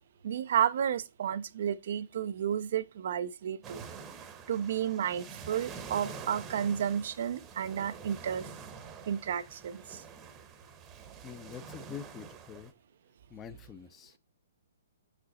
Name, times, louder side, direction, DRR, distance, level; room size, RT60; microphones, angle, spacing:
voice 1, 0.2-3.8 4.5-8.5 9.1-10.0, right 9 dB, 60° right, 0.4 m, -32 dB
sound 1, 3.6-12.7, right 5 dB, 20° right, 0.9 m, -47 dB
voice 2, 11.0-12.7 13.3-14.2, left 8 dB, 20° left, 0.6 m, -46 dB
6.0 x 5.0 x 3.9 m
figure-of-eight pair, 125°, 0 cm